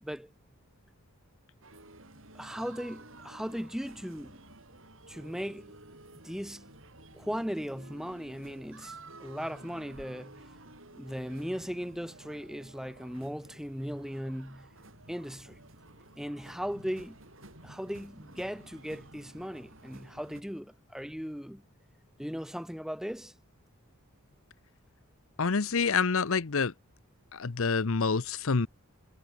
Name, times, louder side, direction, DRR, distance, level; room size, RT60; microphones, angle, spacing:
voice 1, 0.0-0.3 2.3-4.4 5.1-5.8 6.2-6.7 7.1-10.5 10.9-14.7 15.1-15.6 16.2-17.2 17.6-21.6 22.2-23.3, equal, ahead, 2.6 m, -38 dB
sound 1, 1.6-20.4, right 2 dB, 60° right, 7.6 m, -52 dB
voice 2, 25.4-26.7 27.3-28.7, left 5 dB, 65° left, 0.8 m, -27 dB
head